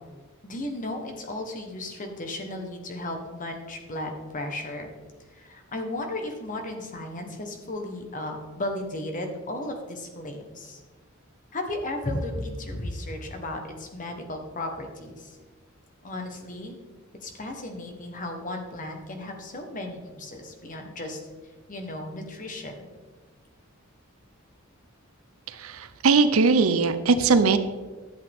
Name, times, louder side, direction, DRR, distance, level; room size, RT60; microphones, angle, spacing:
voice 1, 0.4-4.9 5.3-10.8 11.5-15.4 16.0-16.8 17.2-21.2 21.7-22.9 27.1-27.3, left 1 dB, 40° left, 4 dB, 1.2 m, -35 dB
voice 2, 25.5-27.6, right 4 dB, 75° right, 11 dB, 0.6 m, -20 dB
11.5 x 7.7 x 3.6 m, 1.3 s
head